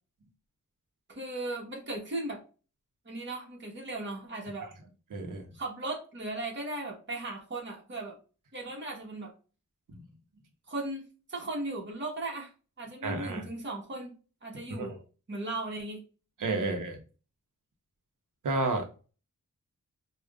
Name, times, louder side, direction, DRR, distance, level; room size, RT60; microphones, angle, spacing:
voice 1, 1.1-2.4 3.0-4.7 5.5-8.2 8.5-9.3 10.7-12.5 12.8-14.1 14.4-14.9 15.3-16.0 16.6-16.7, right 2 dB, 40° right, -2 dB, 1.2 m, -37 dB
voice 2, 5.1-5.4 9.9-10.0 13.0-13.4 14.7-15.0 16.4-17.0 18.4-18.9, right 2 dB, 90° right, 4 dB, 0.9 m, -31 dB
5.0 x 2.4 x 2.4 m, 0.35 s
wide cardioid pair, 140°, 31 cm